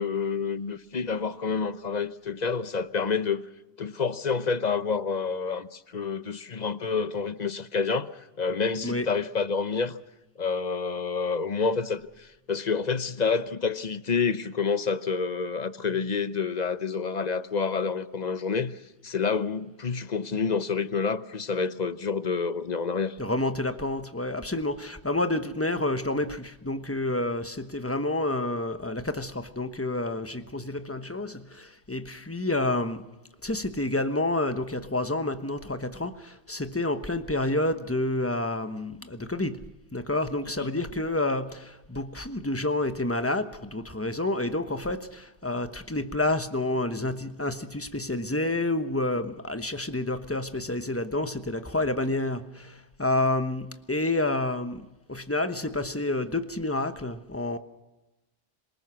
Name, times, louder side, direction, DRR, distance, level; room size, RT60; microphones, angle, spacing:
voice 1, 0.0-3.4 3.8-10.0 10.4-23.2 40.6-40.7, left 5 dB, 40° left, 0.9 m, -28 dB
voice 2, 23.2-33.1 33.4-57.6, left 2 dB, 15° left, 1.1 m, -29 dB
27.0 x 19.0 x 6.3 m
omnidirectional pair, 1.2 m